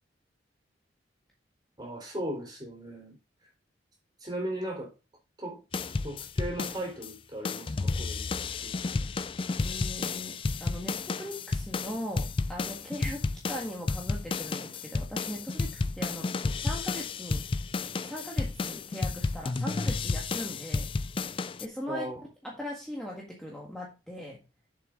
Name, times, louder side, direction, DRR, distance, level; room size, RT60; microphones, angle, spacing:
voice 1, 1.8-3.2 4.2-4.9 5.4-8.9 21.9-22.2, right 1 dB, 20° right, 3.8 m, -37 dB
sound 1, 5.7-7.1 7.4-21.7, left 3 dB, 30° left, 0.4 m, -32 dB
voice 2, 9.6-17.4 18.0-20.9 21.6-22.0 22.4-24.4, equal, 5° left, 1.6 m, -40 dB
7.4 x 6.8 x 3.8 m
head